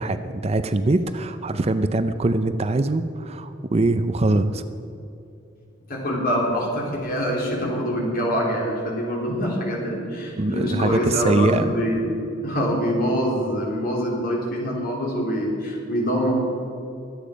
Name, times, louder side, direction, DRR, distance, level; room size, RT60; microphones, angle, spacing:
voice 1, 0.0-4.6 10.4-11.7, right 2 dB, 30° right, 10 dB, 0.5 m, -22 dB
voice 2, 5.9-12.0 12.4-16.3, equal, 50° left, -2 dB, 3.6 m, -25 dB
23.0 x 8.6 x 5.1 m, 2.7 s
head